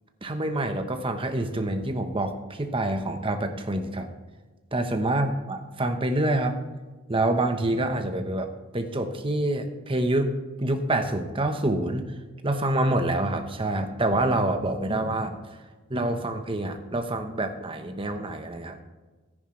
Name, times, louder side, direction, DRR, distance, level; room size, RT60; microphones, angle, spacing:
voice 1, 0.2-4.1 4.7-6.6 7.1-10.3 10.6-12.0 12.4-15.3 15.9-18.8, right 1 dB, 25° right, 6 dB, 1.1 m, -26 dB
14.0 x 10.0 x 3.3 m, 1.3 s
head